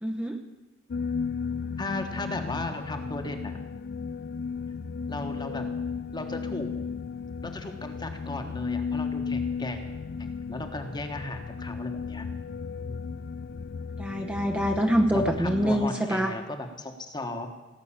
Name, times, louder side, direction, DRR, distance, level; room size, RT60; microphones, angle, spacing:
voice 1, 0.0-0.4 14.0-16.3, equal, 5° right, 3 dB, 0.8 m, -25 dB
sound 1, 0.9-15.9, left 5 dB, 55° left, 0.4 m, -34 dB
voice 2, 1.8-3.5 5.1-5.7 6.1-6.7 7.4-9.8 10.2-12.3 12.8-13.2 15.1-17.5, left 2 dB, 25° left, 5 dB, 1.3 m, -36 dB
17.0 x 6.4 x 8.7 m, 1.1 s
head